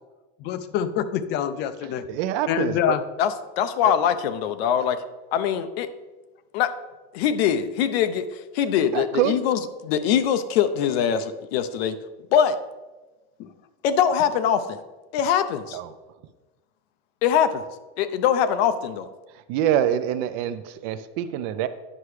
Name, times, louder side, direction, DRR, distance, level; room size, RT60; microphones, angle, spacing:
voice 1, 0.4-2.0 2.5-3.0 13.4-13.5, left 10 dB, 35° left, 12 dB, 0.4 m, -26 dB
voice 2, 2.1-3.0 3.8-3.9 8.9-9.3 15.7-15.9 19.5-21.7, right 10 dB, 50° right, 12 dB, 0.5 m, -25 dB
voice 3, 3.2-5.0 5.3-5.9 6.5-6.7 7.1-8.2 8.5-11.9 12.3-12.6 13.8-14.8 15.1-15.8 17.2-17.6 18.0-19.1, left 8 dB, 75° left, 11 dB, 0.7 m, -22 dB
9.7 x 5.8 x 3.2 m, 1.2 s
supercardioid pair, 160°, 31 cm